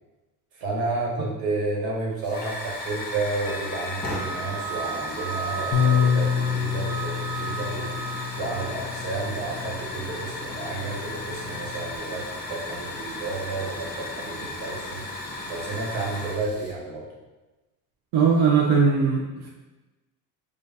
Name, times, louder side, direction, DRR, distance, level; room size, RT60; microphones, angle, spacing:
voice 1, 0.5-8.0 8.3-15.0 15.5-17.1, right 3 dB, 75° right, -4 dB, 1.4 m, -31 dB
Hiss / Fire, 2.2-16.7, left 2 dB, 20° left, 1.1 m, -35 dB
Wind instrument woodwind instrument, 3.4-8.8, right 6 dB, 10° right, 0.3 m, -36 dB
Bass guitar, 5.7-12.0, left 8 dB, 40° left, 0.7 m, -28 dB
voice 2, 18.1-19.5, right 5 dB, 50° right, -1 dB, 0.6 m, -20 dB
4.9 x 2.4 x 2.7 m, 1.1 s
supercardioid pair, 85°, 46 cm